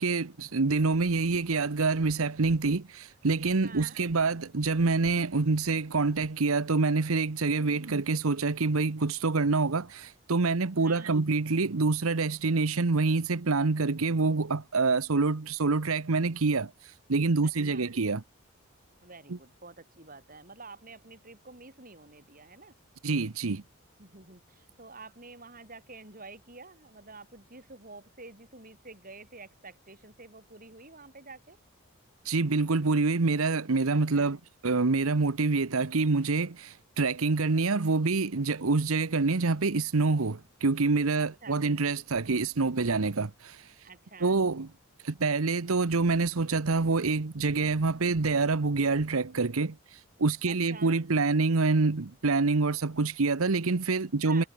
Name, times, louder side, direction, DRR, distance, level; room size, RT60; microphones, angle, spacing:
voice 1, 0.0-18.2 23.0-23.6 32.2-34.4 34.6-43.7 44.2-44.7 45.0-54.4, right 3 dB, 80° right, 0.9 m, -26 dB
voice 2, 3.6-4.0 7.6-7.9 10.8-11.1 17.4-17.9 19.0-22.8 24.0-31.6 33.9-34.4 41.1-41.6 43.8-44.4 50.5-51.0 54.2-54.5, right 3 dB, 40° right, 6.7 m, -49 dB
head